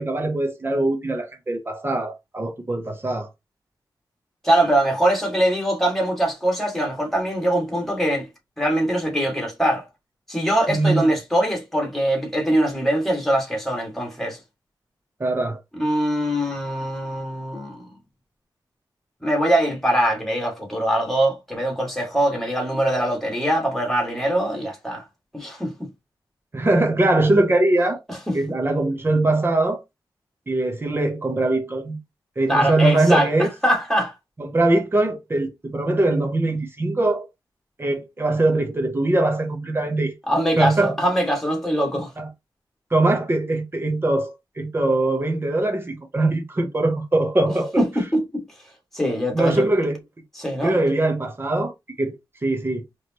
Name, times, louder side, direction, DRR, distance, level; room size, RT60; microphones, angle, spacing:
voice 1, 0.0-3.3 10.7-11.1 15.2-15.6 26.5-28.0 28.3-29.8 30.5-32.0 32.4-33.5 34.4-37.3 37.8-40.1 40.6-41.0 42.2-42.3 42.9-47.8 49.3-50.0 50.6-51.7 52.0-52.1 52.4-52.8, right 2 dB, 30° right, 0.8 m, -22 dB
voice 2, 4.4-8.3 8.6-9.8 10.3-14.4 15.8-17.9 19.2-25.0 25.3-25.9 28.1-28.3 32.5-34.1 40.3-42.1 47.8-48.4 48.9-49.7 50.4-50.8, right 1 dB, 5° left, 1.9 m, -22 dB
4.9 x 3.0 x 2.9 m
wide cardioid pair, 135°, 8 cm